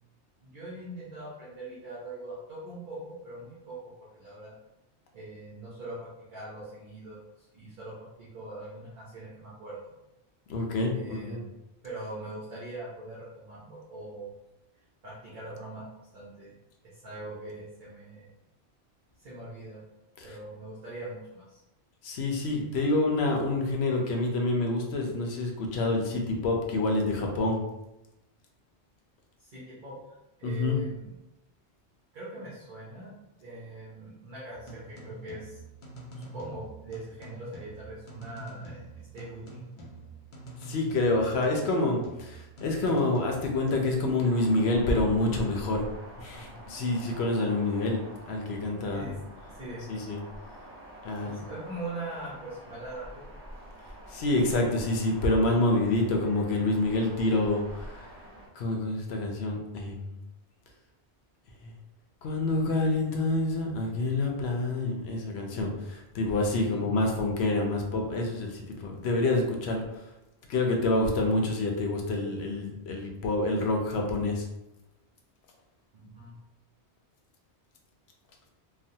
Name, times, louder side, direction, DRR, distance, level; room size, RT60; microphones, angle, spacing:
voice 1, 0.4-4.5 5.1-9.9 10.9-11.5 11.8-14.3 15.0-15.9 16.1-16.5 16.8-18.3 19.2-19.8 20.2-21.6 29.4-30.0 30.4-31.1 32.1-33.1 33.4-35.6 36.2-38.8 39.1-39.6 48.9-49.2 49.5-50.0 51.2-53.2 54.7-54.8 65.5-65.6 66.7-66.8 75.9-76.3, right 2 dB, 50° right, -7 dB, 0.8 m, -42 dB
voice 2, 10.5-11.4 20.2-20.3 22.0-27.6 30.4-30.8 40.6-45.8 46.2-49.1 49.9-50.2 51.0-51.4 54.1-58.1 58.6-60.1 61.6-61.7 62.2-65.7 66.1-69.8 70.5-74.4, left 2 dB, 70° left, 2 dB, 0.8 m, -27 dB
sound 1, 34.5-43.8, right 2 dB, 40° left, 0.4 m, -45 dB
sound 2, 44.3-58.5, equal, 15° right, 0.7 m, -47 dB
3.2 x 2.1 x 2.7 m, 0.94 s
omnidirectional pair, 1.2 m